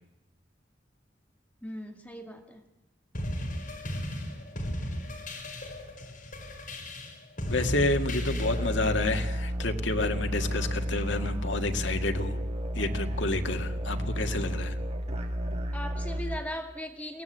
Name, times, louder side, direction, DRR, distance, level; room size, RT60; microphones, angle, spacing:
voice 1, 1.6-2.6 15.7-17.2, left 1 dB, 10° left, 4 dB, 2.0 m, -38 dB
sound 1, 3.1-8.8, left 1 dB, 45° left, 4.5 m, -36 dB
voice 2, 7.5-12.4 12.7-14.8, left 2 dB, 75° left, 6 dB, 1.9 m, -29 dB
sound 2, 7.6-16.4, equal, 35° right, 2.4 m, -32 dB
23.0 x 17.5 x 8.0 m, 0.91 s
head